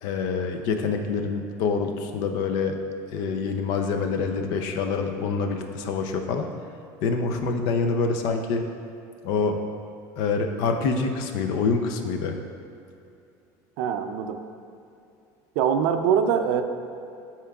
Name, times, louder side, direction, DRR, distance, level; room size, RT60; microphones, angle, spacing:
voice 1, 0.0-2.8 3.1-6.5 7.0-8.6 9.2-9.6 10.2-12.4, left 4 dB, 60° left, 5 dB, 0.5 m, -26 dB
voice 2, 13.8-14.4 15.6-16.6, right 7 dB, 70° right, 7 dB, 0.4 m, -23 dB
10.0 x 4.4 x 2.3 m, 2.6 s
cardioid pair, 165°, 8 cm